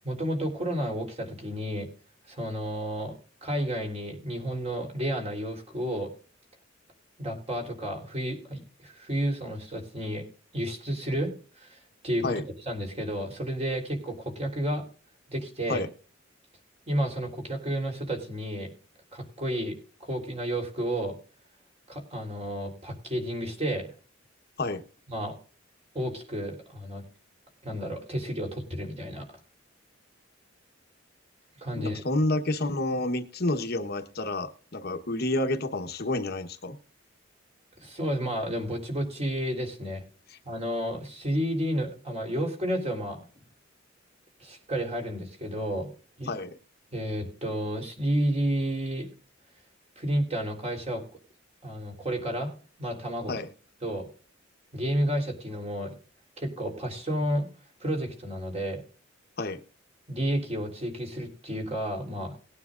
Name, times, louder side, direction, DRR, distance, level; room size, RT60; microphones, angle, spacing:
voice 1, 0.0-1.9 2.3-3.1 3.4-6.1 7.2-10.2 10.5-11.8 12.0-14.8 15.3-15.9 16.9-18.7 19.1-21.1 21.9-23.9 25.1-25.4 25.9-27.0 27.6-29.3 31.6-32.0 37.8-40.1 40.5-43.2 44.4-45.9 46.2-46.4 46.9-49.1 50.0-51.0 51.6-53.4 53.8-54.1 54.7-55.9 56.4-57.5 57.8-58.8 60.1-62.4, equal, 35° right, 2 dB, 3.7 m, -31 dB
voice 2, 31.7-36.8 46.3-46.5 53.3-53.5 59.4-59.6, left 2 dB, 55° left, 6 dB, 1.1 m, -29 dB
20.0 x 9.6 x 2.5 m, 0.38 s
head